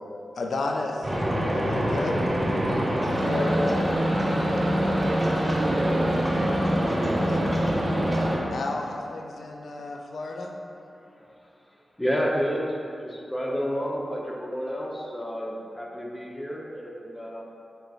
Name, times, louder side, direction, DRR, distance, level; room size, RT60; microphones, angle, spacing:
voice 1, 0.4-1.1 1.5-2.2 3.2-4.2 7.1-7.6 8.5-10.6, left 2 dB, 75° left, 1 dB, 0.4 m, -32 dB
sound 1, 1.0-8.4, equal, 25° right, 1.4 m, -24 dB
voice 2, 5.0-6.6 6.8-7.6, right 2 dB, 50° right, 5 dB, 0.3 m, -34 dB
voice 3, 12.0-17.4, equal, 15° left, -2 dB, 0.8 m, -30 dB
4.8 x 4.5 x 2.4 m, 2.6 s
cardioid pair, 40°, 0 cm